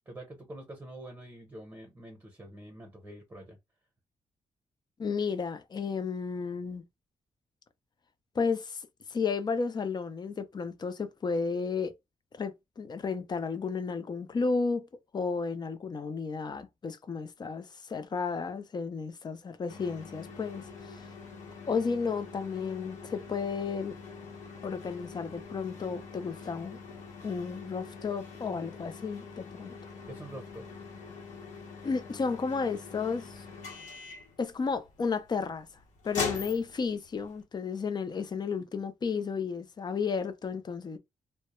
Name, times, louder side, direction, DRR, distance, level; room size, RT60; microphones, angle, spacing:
voice 1, 0.0-3.6 30.1-30.7, right 1 dB, 20° right, 0.8 m, -46 dB
voice 2, 5.0-6.8 8.3-11.9 12.3-14.9 15.1-21.0 21.7-23.9 24.6-26.8 27.2-29.7 31.8-33.4 34.4-35.7 36.0-41.0, left 5 dB, 35° left, 0.5 m, -33 dB
sound 1, 19.7-37.4, left 5 dB, 80° left, 0.8 m, -43 dB
2.2 x 2.1 x 2.9 m
cardioid pair, 95°, 13 cm